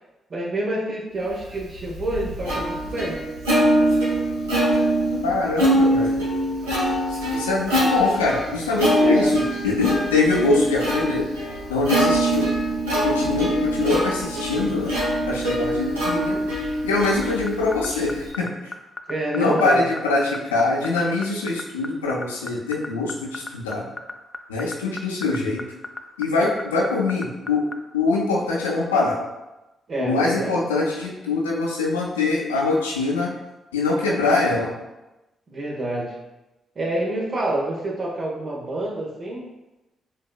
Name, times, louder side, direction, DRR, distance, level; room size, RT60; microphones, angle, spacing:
voice 1, 0.3-3.2 9.0-9.3 19.1-19.9 29.9-30.6 35.5-36.2 36.7-39.4, right 1 dB, 50° right, -3 dB, 1.1 m, -27 dB
Plucked string instrument, 1.6-18.3, right 1 dB, 85° right, 1.1 m, -23 dB
voice 2, 5.2-6.2 7.3-11.3 11.7-12.5 13.0-15.0 15.3-16.4 16.8-18.7 19.3-23.9 24.5-25.6 26.2-27.6 27.9-29.2 30.0-33.3 33.7-34.7, left 3 dB, 90° left, -3 dB, 0.6 m, -23 dB
sound 1, 17.2-27.7, left 3 dB, 30° left, 0.4 m, -33 dB
7.1 x 2.6 x 2.3 m, 1.0 s
hypercardioid pair, 40°, 0 cm